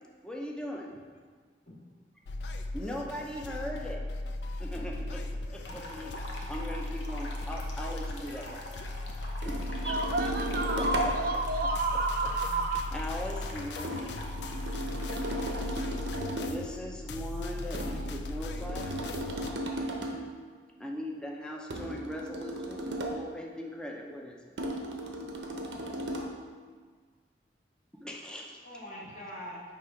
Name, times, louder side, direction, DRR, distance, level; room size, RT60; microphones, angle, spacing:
voice 1, 0.2-0.9 2.7-4.0 4.6-5.3 5.5-8.6 9.4-10.1 10.8-11.1 12.9-14.2 16.5-19.5 20.8-24.4 27.9-28.6, equal, 5° left, -1 dB, 0.5 m, -40 dB
sound 1, 2.3-19.5, left 2 dB, 75° left, 0.4 m, -37 dB
sound 2, 5.6-16.2, left 1 dB, 90° left, 0.8 m, -46 dB
sound 3, 9.4-11.3 13.8-16.7 17.7-20.3 21.7-23.3 24.6-26.4, right 1 dB, 90° right, 0.7 m, -35 dB
voice 2, 9.8-12.8, right 3 dB, 55° right, 5 dB, 0.5 m, -30 dB
voice 3, 17.4-18.0 25.8-26.0 28.6-29.7, equal, 45° left, -4 dB, 1.3 m, -45 dB
6.1 x 3.2 x 4.8 m, 1.6 s
head